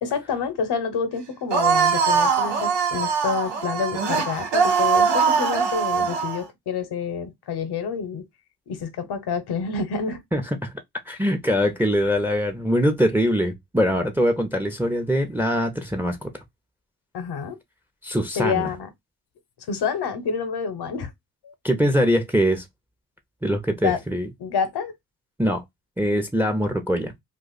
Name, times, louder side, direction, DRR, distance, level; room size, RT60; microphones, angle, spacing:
voice 1, 0.0-8.2 8.7-10.2 17.1-17.6 18.4-18.9 19.7-21.1 21.4-21.5 23.8-24.0 24.4-24.9, left 6 dB, 65° left, 1.0 m, -28 dB
sound 1, 1.5-6.4, right 6 dB, 80° right, 1.1 m, -21 dB
voice 2, 10.3-10.7 11.1-16.3 18.0-18.7 21.6-22.6 23.4-24.3 25.4-25.6 26.0-27.1, equal, 5° right, 0.9 m, -22 dB
2.4 x 2.4 x 4.0 m
supercardioid pair, 45°, 42 cm